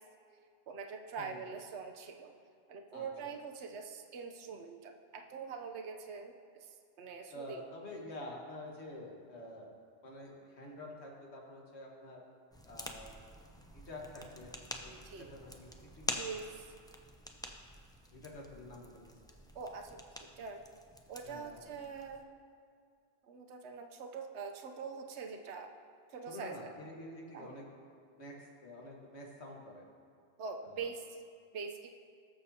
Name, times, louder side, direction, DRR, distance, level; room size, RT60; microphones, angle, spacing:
voice 1, 0.7-2.3 2.7-7.6 14.9-15.3 16.1-16.7 19.5-20.6 21.1-22.3 23.2-25.7 26.1-26.7 27.3-27.6 30.4-31.2 31.5-31.9, right 5 dB, 80° right, 3 dB, 1.0 m, -44 dB
voice 2, 2.9-3.3 7.3-9.7 10.0-12.2 12.7-13.1 13.7-14.5 14.8-14.9 15.2-15.7 15.9-16.2 18.1-19.0 21.2-21.6 26.3-27.6 28.2-29.8 30.6-30.9, left 1 dB, 75° left, -2 dB, 1.8 m, -48 dB
sound 1, 12.5-22.2, equal, 5° left, 0.4 m, -47 dB
19.5 x 6.9 x 2.8 m, 2.4 s
omnidirectional pair, 1.1 m